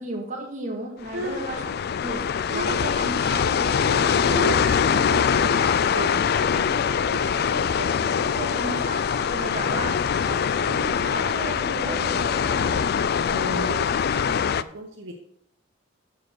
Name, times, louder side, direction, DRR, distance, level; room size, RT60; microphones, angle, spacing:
voice 1, 0.0-1.6 2.0-2.2 2.5-3.7 6.5-7.0 7.4-9.0 9.3-10.0 10.3-12.9, right 2 dB, 35° right, 1 dB, 1.8 m, -35 dB
sound 1, 1.0-14.6, left 7 dB, 50° left, 0.3 m, -23 dB
voice 2, 1.1-1.4 2.5-2.8 3.8-6.3 7.1-7.6 13.2-15.2, right 1 dB, 65° right, 2 dB, 0.9 m, -34 dB
12.5 x 4.8 x 4.6 m, 0.69 s
head